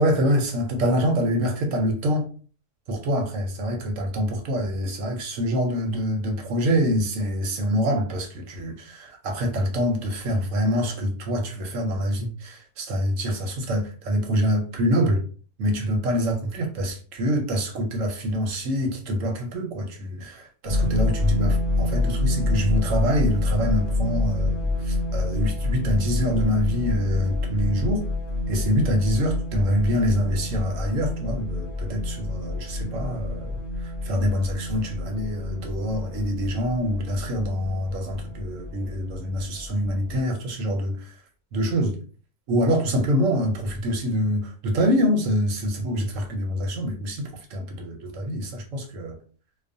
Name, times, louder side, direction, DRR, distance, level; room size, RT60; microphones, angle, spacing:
voice 1, 0.0-2.3 2.9-15.2 15.6-28.1 28.5-41.1 41.5-42.0 42.5-49.2, equal, 65° right, 0.9 m, -25 dB
sound 1, 20.6-40.2, left 2 dB, 45° left, 0.7 m, -27 dB
2.3 x 2.3 x 2.5 m
omnidirectional pair, 1.6 m